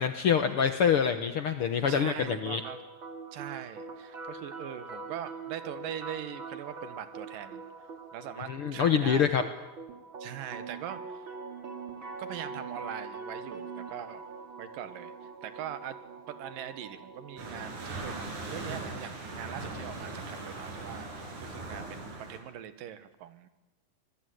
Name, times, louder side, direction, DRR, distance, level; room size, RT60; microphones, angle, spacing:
voice 1, 0.0-2.6 8.5-9.4, left 7 dB, 60° left, 8 dB, 1.5 m, -26 dB
sound 1, 1.9-17.9, right 4 dB, 40° right, 2.9 m, -43 dB
voice 2, 1.9-2.8 3.3-7.6 8.1-9.3 10.2-11.2 12.2-14.2 14.6-15.1 15.4-16.0 16.3-23.5, right 10 dB, 80° right, 12 dB, 3.0 m, -41 dB
sound 2, 17.4-22.4, right 2 dB, 65° right, 6.3 m, -39 dB
25.5 x 20.5 x 9.5 m, 1.0 s
omnidirectional pair, 3.9 m